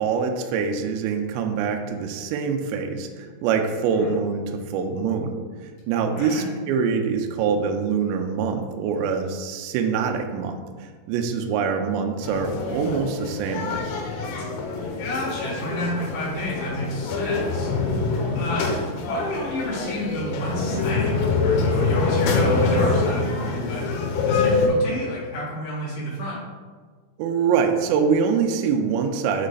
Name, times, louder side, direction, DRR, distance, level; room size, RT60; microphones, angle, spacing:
voice 1, 0.0-5.4 5.9-10.6 11.1-13.9 27.2-29.5, right 6 dB, 85° right, 4 dB, 2.5 m, -24 dB
voice 2, 6.2-6.5 15.0-17.7 18.3-23.8 24.3-26.4, left 1 dB, 60° left, -8 dB, 1.7 m, -30 dB
sound 1, 12.2-24.7, left 3 dB, 90° left, 3.4 m, -25 dB
7.6 x 3.2 x 3.9 m, 1.5 s
omnidirectional pair, 5.8 m